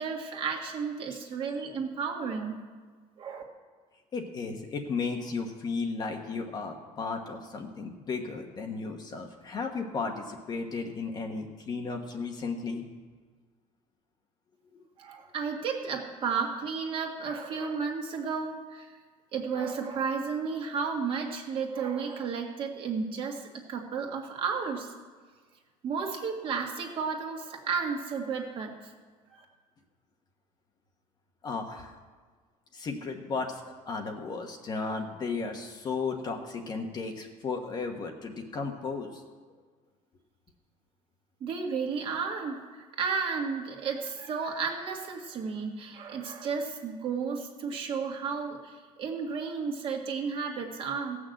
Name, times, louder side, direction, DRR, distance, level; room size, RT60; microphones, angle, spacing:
voice 1, 0.0-2.6 3.2-3.4 15.0-18.9 19.3-24.9 25.8-28.7 29.3-29.4 41.4-51.2, right 5 dB, 40° right, 1 dB, 1.8 m, -33 dB
voice 2, 4.1-12.8 14.7-14.8 31.4-32.0 32.7-39.2, left 4 dB, 30° left, 3 dB, 1.2 m, -34 dB
17.0 x 6.2 x 7.8 m, 1.5 s
cardioid pair, 175°, 14 cm